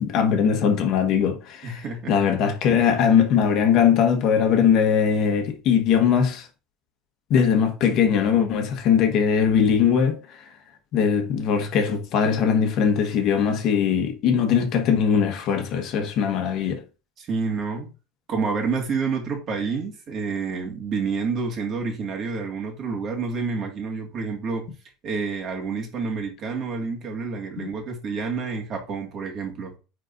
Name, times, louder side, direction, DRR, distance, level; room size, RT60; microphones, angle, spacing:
voice 1, 0.0-6.5 7.3-10.4 10.9-16.8 27.6-27.7, left 7 dB, 50° left, 1.3 m, -21 dB
voice 2, 1.6-2.1 17.2-17.9 18.3-24.7 25.0-29.7, right 4 dB, 35° right, 2.0 m, -28 dB
9.5 x 4.0 x 2.6 m
cardioid pair, 145°, 0 cm